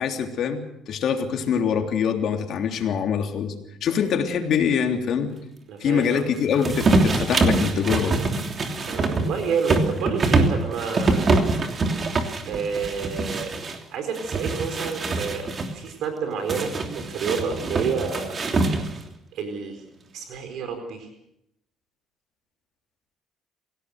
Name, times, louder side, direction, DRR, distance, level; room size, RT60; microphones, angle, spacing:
voice 1, 0.0-3.5 3.8-5.3 5.8-8.2, left 7 dB, 60° left, 4 dB, 3.3 m, -24 dB
voice 2, 5.7-6.3 8.8-11.3 12.5-13.6 13.9-15.5 15.7-18.4 19.3-19.8 20.1-21.1, right 5 dB, 70° right, 6 dB, 4.3 m, -29 dB
sound 1, 6.6-13.8 14.1-15.7 16.5-19.1, right 3 dB, 35° right, 3.1 m, -24 dB
26.5 x 17.5 x 6.5 m, 0.79 s
cardioid pair, 120°, 0 cm